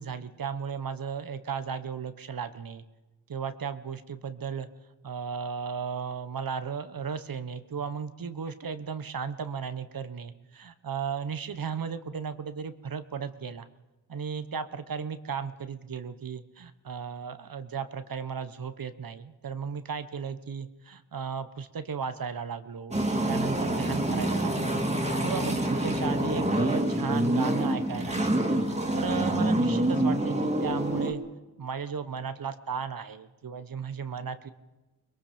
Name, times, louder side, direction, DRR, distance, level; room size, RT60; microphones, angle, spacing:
voice 1, 0.0-2.8 3.3-4.7 5.0-13.7 14.1-24.8 25.2-28.5 28.9-31.2 31.6-34.5, right 6 dB, 60° right, 11 dB, 1.3 m, -35 dB
sound 1, 22.9-31.1, right 1 dB, 15° right, 3.0 m, -26 dB
24.5 x 22.0 x 5.2 m, 1.1 s
cardioid pair, 60°, 39 cm